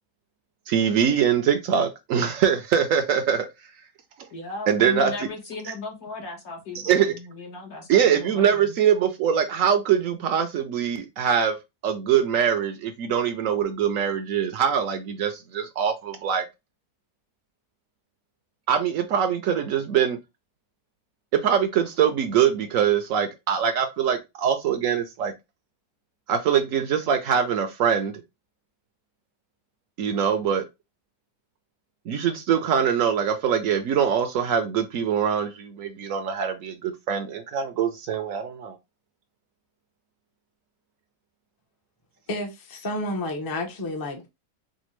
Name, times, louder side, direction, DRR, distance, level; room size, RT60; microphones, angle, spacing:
voice 1, 0.7-3.7 4.2-4.3 4.7-5.1 6.7-7.1 7.9-11.6 11.8-16.5 18.7-20.2 21.3-25.3 26.3-28.2 30.0-30.6 32.0-38.8, right 8 dB, 65° right, 0.9 m, -23 dB
voice 2, 4.3-8.7, left 3 dB, 70° left, 1.8 m, -36 dB
voice 3, 42.3-44.3, left 1 dB, 20° left, 0.5 m, -30 dB
5.1 x 2.2 x 3.1 m
omnidirectional pair, 1.6 m